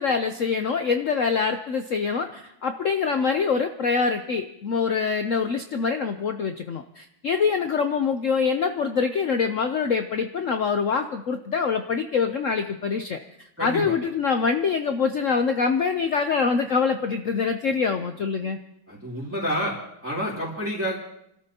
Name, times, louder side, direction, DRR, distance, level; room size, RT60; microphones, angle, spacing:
voice 1, 0.0-13.2 13.6-18.6, left 5 dB, 80° left, 7 dB, 0.7 m, -24 dB
voice 2, 13.6-14.0 18.9-19.8 20.0-21.0, equal, 5° right, -5 dB, 2.5 m, -28 dB
29.0 x 13.0 x 2.8 m, 0.77 s
omnidirectional pair, 2.2 m